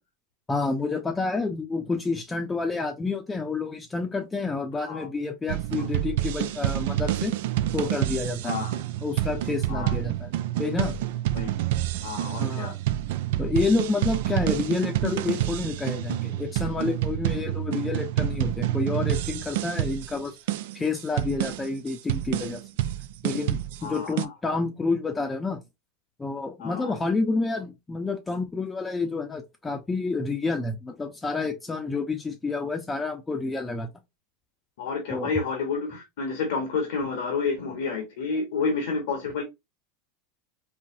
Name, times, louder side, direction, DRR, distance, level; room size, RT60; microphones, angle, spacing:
voice 1, 0.5-7.4 7.7-8.6 9.0-10.3 10.6-11.0 12.4-12.8 13.4-20.4 20.7-22.6 23.2-25.6 26.2-33.9 35.1-35.3, left 3 dB, 15° left, 0.6 m, -29 dB
sound 1, 5.5-24.2, right 13 dB, 75° right, 0.3 m, -28 dB
voice 2, 8.4-8.8 9.7-9.9 11.3-11.5 12.0-12.7 23.8-24.3 26.6-27.0 34.8-39.4, left 4 dB, 75° left, 1.0 m, -30 dB
3.9 x 2.1 x 2.6 m
hypercardioid pair, 100°, 0 cm